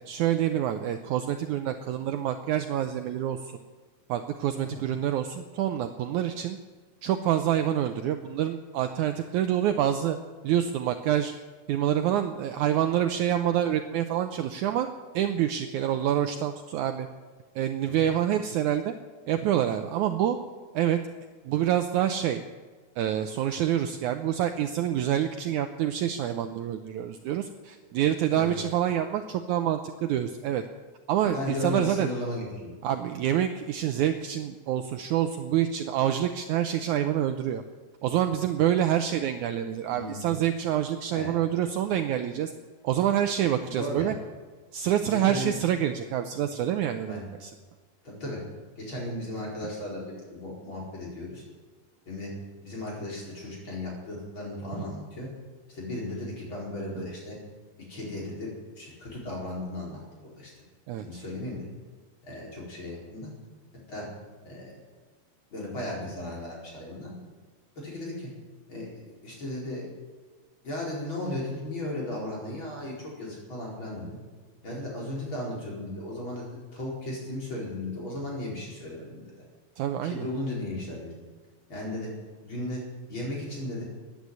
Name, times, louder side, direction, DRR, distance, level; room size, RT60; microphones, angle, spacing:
voice 1, 0.1-3.4 4.1-6.6 7.0-10.2 10.4-11.3 11.7-14.9 15.1-17.1 17.6-18.9 19.3-20.4 20.7-21.0 21.5-22.4 23.0-30.6 31.1-32.1 32.8-37.6 38.0-42.5 42.8-44.1 44.7-47.5 54.8-54.9 60.9-61.1 79.8-80.3, right 10 dB, 75° right, 7 dB, 1.9 m, -27 dB
voice 2, 31.2-32.8 39.9-40.3 41.1-41.3 43.7-44.1 45.1-45.6 47.1-47.2 48.0-48.4 48.8-51.4 52.1-52.3 52.6-55.3 55.7-57.4 57.9-58.5 58.8-60.5 61.0-61.7 62.2-63.3 63.9-64.1 64.5-64.7 65.5-67.1 67.8-68.3 68.7-69.9 70.6-74.2 74.6-76.4 76.7-79.2 80.0-81.1 81.7-82.1 82.4-82.8 83.1-83.8, left 1 dB, 35° left, -4 dB, 5.2 m, -35 dB
14.5 x 10.0 x 9.5 m, 1.4 s
omnidirectional pair, 4.0 m